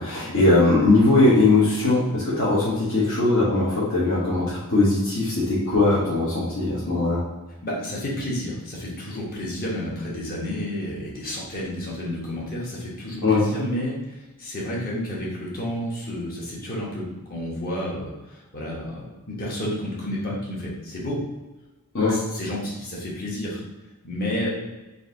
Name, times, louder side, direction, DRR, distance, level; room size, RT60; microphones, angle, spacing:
voice 1, 0.0-7.2 13.2-13.4 21.9-22.2, left 2 dB, 60° left, -8 dB, 1.1 m, -20 dB
voice 2, 7.6-21.2 22.1-23.6 24.0-24.5, left 1 dB, 40° left, -4 dB, 1.2 m, -31 dB
3.9 x 2.7 x 3.8 m, 1.1 s
head